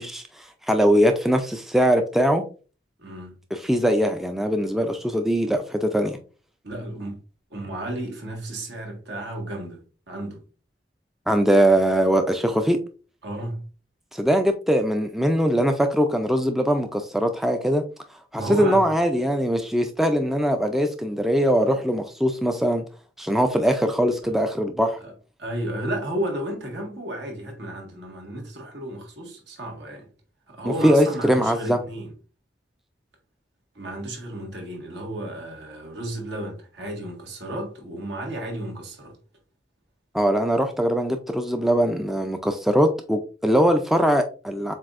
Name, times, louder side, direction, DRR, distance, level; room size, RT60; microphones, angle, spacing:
voice 1, 0.0-2.4 3.5-6.2 11.3-12.8 14.1-17.8 18.3-22.8 23.2-25.0 30.7-31.8 40.1-44.7, equal, ahead, 0.3 m, -21 dB
voice 2, 3.0-3.4 6.6-7.2 7.5-9.8 10.1-10.4 13.2-13.6 18.4-18.9 24.2-24.4 25.0-25.1 25.4-30.1 30.5-32.1 33.8-39.1, right 1 dB, 75° right, 1.7 m, -33 dB
7.3 x 2.6 x 2.5 m
head